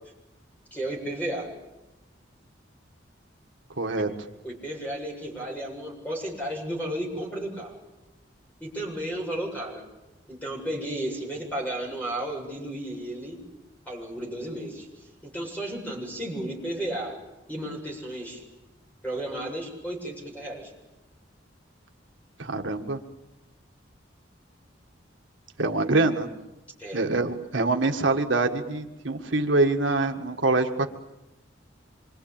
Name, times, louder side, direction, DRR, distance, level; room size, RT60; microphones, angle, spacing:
voice 1, 0.7-1.5 3.9-4.0 4.4-7.7 8.6-9.8 10.3-13.4 13.9-14.9 15.3-17.2 17.5-18.4 19.0-20.7 26.8-27.0, right 1 dB, 10° left, -1 dB, 7.7 m, -33 dB
voice 2, 3.8-4.1 22.4-23.0 25.6-26.3 26.9-30.9, right 2 dB, 80° right, 4 dB, 1.8 m, -24 dB
26.5 x 24.0 x 8.9 m, 0.97 s
head